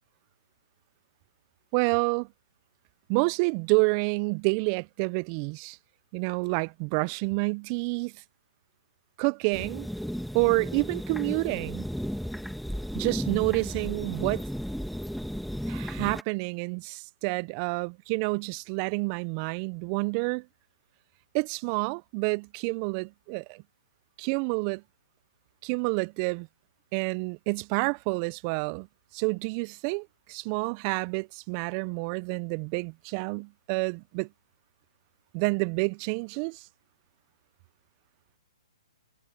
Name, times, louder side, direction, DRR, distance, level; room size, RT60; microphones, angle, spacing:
voice 1, 1.7-2.3 3.1-5.8 6.1-8.1 9.2-9.9 10.3-11.9 12.9-14.4 15.7-20.5 21.3-23.6 24.2-24.8 25.6-26.5 26.9-28.9 29.1-34.3 35.3-36.7, right 31 dB, 30° right, 0.5 m, -28 dB
sound 1, 9.5-16.2, equal, ahead, 1.5 m, -34 dB
hypercardioid pair, 140°, 3 cm